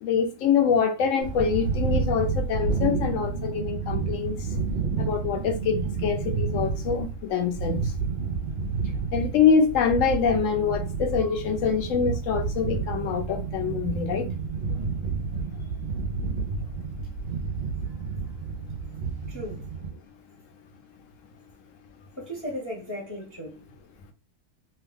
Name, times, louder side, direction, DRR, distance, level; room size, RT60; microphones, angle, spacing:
voice 1, 0.0-4.4 5.0-7.8 9.1-14.3, left 6 dB, 65° left, 0.9 m, -25 dB
sound 1, 1.2-19.9, right 4 dB, 55° right, 0.7 m, -30 dB
voice 2, 19.3-19.6 22.2-23.6, equal, 15° left, 0.7 m, -36 dB
2.8 x 2.3 x 3.3 m
omnidirectional pair, 1.6 m